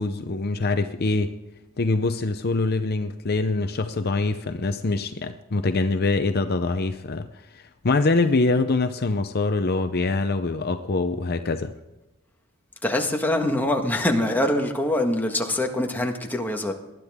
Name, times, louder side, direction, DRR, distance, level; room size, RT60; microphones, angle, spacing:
voice 1, 0.0-1.3 1.8-7.3 7.5-11.7, left 3 dB, 50° left, 0.7 m, -24 dB
voice 2, 12.8-16.7, left 1 dB, 10° left, 1.6 m, -24 dB
20.0 x 11.5 x 3.6 m
head